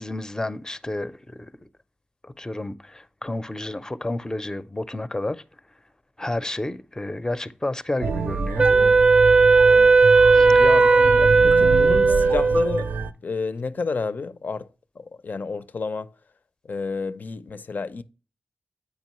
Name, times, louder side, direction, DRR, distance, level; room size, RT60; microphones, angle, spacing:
voice 1, 0.0-1.5 2.2-5.4 6.2-8.7 10.3-10.7, left 2 dB, 20° left, 0.5 m, -31 dB
sound 1, 8.0-13.1, right 4 dB, 85° right, 0.5 m, -28 dB
Wind instrument woodwind instrument, 8.6-12.9, right 4 dB, 35° right, 0.5 m, -16 dB
voice 2, 10.5-12.9 13.2-14.7 15.0-16.1 16.7-18.0, left 4 dB, 65° left, 0.5 m, -30 dB
8.3 x 5.0 x 3.0 m
cardioid pair, 60°, 3 cm